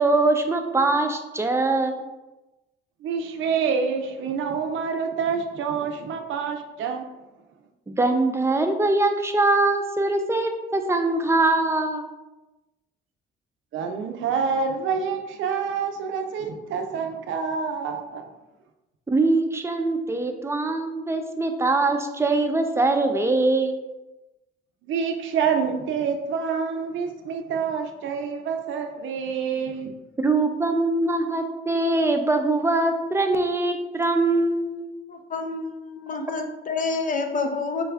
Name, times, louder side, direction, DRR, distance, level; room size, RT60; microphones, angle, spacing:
voice 1, 0.0-2.0 8.0-12.1 19.1-23.8 30.2-34.9, right 2 dB, 15° right, 5 dB, 0.5 m, -22 dB
voice 2, 3.0-7.0 13.7-18.3 24.9-29.9, right 6 dB, 75° right, 5 dB, 0.5 m, -27 dB
voice 3, 35.1-37.8, left 4 dB, 40° left, 5 dB, 0.6 m, -28 dB
5.3 x 2.3 x 3.4 m, 1.1 s
cardioid pair, 90°, 20 cm